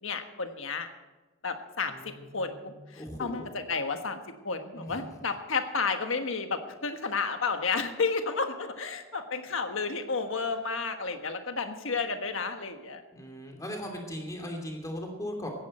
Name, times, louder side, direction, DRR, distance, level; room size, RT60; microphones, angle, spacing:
voice 1, 0.0-0.9 1.4-4.2 4.4-13.0, left 4 dB, 70° left, 6 dB, 1.4 m, -32 dB
voice 2, 1.9-2.7 3.0-3.5 4.7-5.1 13.1-15.5, equal, 15° left, 2 dB, 2.8 m, -39 dB
17.5 x 14.5 x 4.4 m, 1.2 s
head